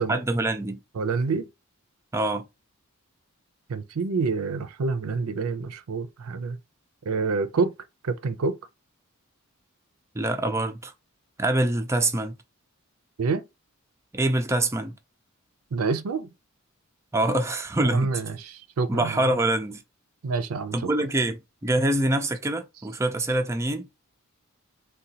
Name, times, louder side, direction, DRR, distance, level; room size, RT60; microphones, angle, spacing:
voice 1, 0.0-0.8 2.1-2.5 10.1-10.9 11.4-12.4 14.1-14.9 17.1-18.1 18.9-19.8 20.7-23.9, right 1 dB, 15° right, 0.4 m, -25 dB
voice 2, 1.0-1.5 3.7-6.6 7.1-7.7 8.0-8.6 13.2-13.4 15.7-16.3 17.8-19.3 20.2-20.9, right 4 dB, 85° right, 0.5 m, -27 dB
3.7 x 2.3 x 2.8 m
head